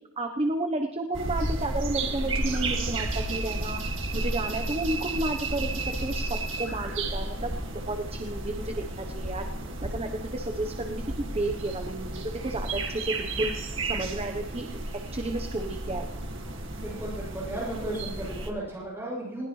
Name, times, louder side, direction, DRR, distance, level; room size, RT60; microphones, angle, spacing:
voice 1, 0.2-3.8 4.1-6.3 6.6-7.5 7.9-9.4 9.8-13.5 13.8-14.7 15.1-16.1, right 2 dB, 30° right, 5 dB, 0.9 m, -32 dB
sound 1, 1.1-18.5, right 2 dB, 65° right, 2.0 m, -32 dB
voice 2, 16.7-19.5, right 1 dB, 10° right, -6 dB, 7.2 m, -35 dB
21.0 x 18.0 x 3.2 m, 0.91 s
head